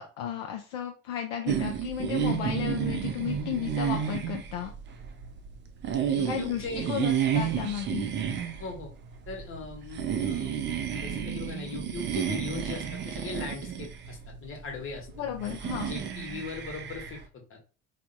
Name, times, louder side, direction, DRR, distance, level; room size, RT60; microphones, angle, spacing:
voice 1, 0.0-4.7 6.2-8.1 15.2-15.9, left 9 dB, 65° left, 3 dB, 0.5 m, -34 dB
sound 1, 1.5-17.2, right 8 dB, 30° right, 0.4 m, -32 dB
voice 2, 6.1-6.9 8.6-8.9 9.3-15.1 15.8-17.6, left 4 dB, 35° left, 2 dB, 1.0 m, -39 dB
3.3 x 2.0 x 2.6 m, 0.35 s
figure-of-eight pair, 65°, 38 cm